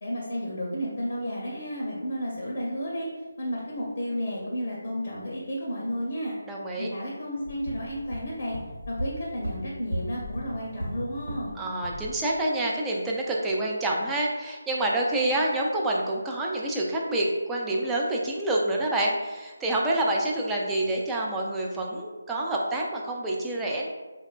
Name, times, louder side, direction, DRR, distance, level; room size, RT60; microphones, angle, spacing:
voice 1, 0.0-3.1 3.4-6.3 6.8-8.6 8.9-11.6, equal, 40° left, -5 dB, 0.6 m, -32 dB
voice 2, 6.5-6.9 11.6-23.9, right 1 dB, 5° right, -3 dB, 0.3 m, -27 dB
sound 1, 7.4-11.5 11.8-12.1, equal, 70° right, 0.7 m, -35 dB
3.5 x 2.2 x 2.3 m, 1.2 s
figure-of-eight pair, 155°, 0 cm